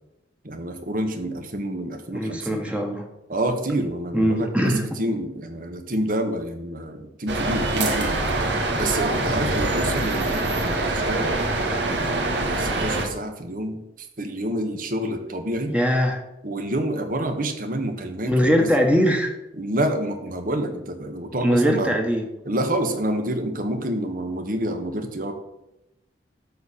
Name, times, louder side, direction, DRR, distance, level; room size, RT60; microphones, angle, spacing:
voice 1, 0.4-2.6 3.3-11.4 11.9-13.8 14.2-15.7 16.4-18.7 19.6-22.0 22.4-25.3, right 1 dB, 50° right, 5 dB, 1.5 m, -28 dB
voice 2, 2.1-3.1 4.1-4.9 15.7-16.2 18.2-19.3 21.4-22.3, equal, 5° right, 2 dB, 1.4 m, -21 dB
sound 1, 7.3-13.1, right 2 dB, 80° right, 1.9 m, -24 dB
12.5 x 4.4 x 8.5 m, 0.91 s
head